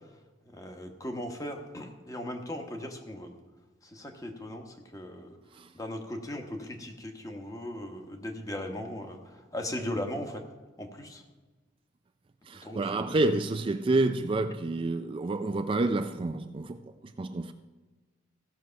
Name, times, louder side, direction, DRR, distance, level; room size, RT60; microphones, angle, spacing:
voice 1, 0.5-3.3 3.8-5.4 5.7-10.4 10.8-11.2 12.6-13.1, left 1 dB, 20° left, 4 dB, 1.2 m, -38 dB
voice 2, 12.5-17.5, right 2 dB, 30° right, 8 dB, 0.3 m, -29 dB
16.0 x 6.3 x 5.7 m, 1.2 s
head